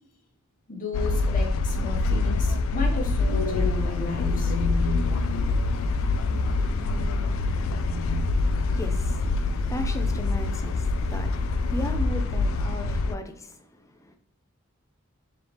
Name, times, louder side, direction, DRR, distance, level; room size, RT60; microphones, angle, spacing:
voice 1, 0.7-4.5, left 2 dB, 40° left, 1.0 m, -34 dB
sound 1, 0.9-13.2, left 3 dB, 75° left, 0.3 m, -25 dB
sound 2, 3.2-12.0, left 3 dB, 75° right, 1.2 m, -37 dB
voice 2, 7.4-14.2, equal, 15° left, 0.5 m, -38 dB
3.9 x 3.5 x 3.0 m
head